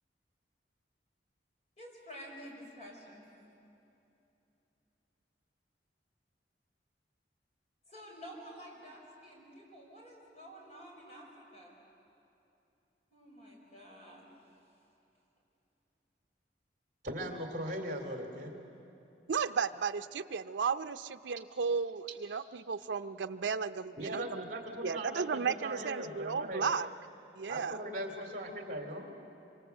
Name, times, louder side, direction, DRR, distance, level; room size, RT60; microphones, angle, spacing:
voice 1, 1.8-3.3 7.9-11.8 13.1-14.3, equal, 40° left, -1 dB, 5.4 m, -50 dB
voice 2, 17.0-18.6 24.0-26.7 27.5-29.1, right 1 dB, 45° right, 4 dB, 3.0 m, -39 dB
voice 3, 19.3-24.4 24.8-26.9 27.4-27.8, right 5 dB, 80° right, 8 dB, 0.5 m, -34 dB
25.5 x 25.0 x 8.2 m, 2.9 s
head